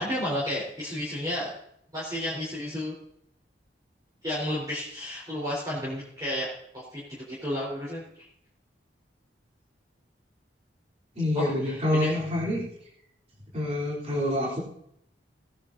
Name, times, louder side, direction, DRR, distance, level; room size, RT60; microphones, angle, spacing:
voice 1, 0.0-1.5 1.9-3.0 4.2-6.5 6.7-7.0 7.4-8.0 11.3-12.2, left 1 dB, 20° right, -7 dB, 3.9 m, -31 dB
voice 2, 11.2-12.6 13.5-14.6, left 1 dB, 35° right, -4 dB, 3.5 m, -27 dB
19.0 x 9.8 x 2.7 m, 0.73 s
head